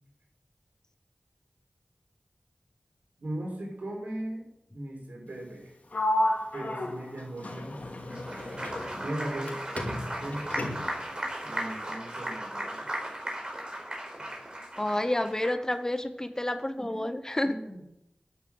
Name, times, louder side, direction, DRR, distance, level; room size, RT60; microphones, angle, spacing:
voice 1, 3.2-4.5 4.7-5.7 6.5-7.8 8.9-10.7 11.4-12.9 14.2-14.3 16.8-17.1 17.4-17.8, right 1 dB, 80° right, -1 dB, 6.1 m, -38 dB
Sliding door, 5.9-9.5 9.8-11.1, left 1 dB, 65° left, 2.5 m, -32 dB
Applause, 8.0-15.8, right 1 dB, 35° right, 4.5 m, -36 dB
voice 2, 14.8-17.5, left 1 dB, 20° left, 10 dB, 1.0 m, -29 dB
12.5 x 9.6 x 7.9 m, 0.82 s
wide cardioid pair, 70°, 3 cm